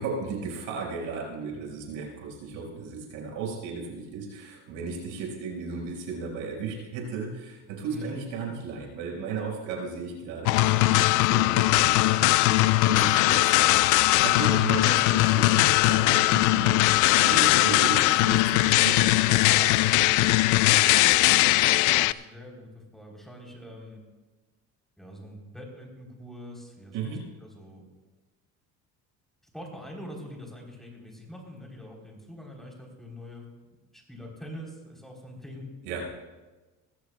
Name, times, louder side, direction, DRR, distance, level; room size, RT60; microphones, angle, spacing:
voice 1, 0.0-16.8 17.1-20.2 26.9-27.2 35.8-36.0, right 5 dB, 80° right, -1 dB, 5.2 m, -35 dB
sound 1, 10.4-22.1, left 18 dB, 70° left, 0.5 m, -20 dB
voice 2, 20.8-24.0 25.0-27.1 27.4-27.8 29.5-33.5 33.9-35.7, left 1 dB, ahead, -1 dB, 3.5 m, -44 dB
20.5 x 15.0 x 2.3 m, 1.2 s
cardioid pair, 125°, 32 cm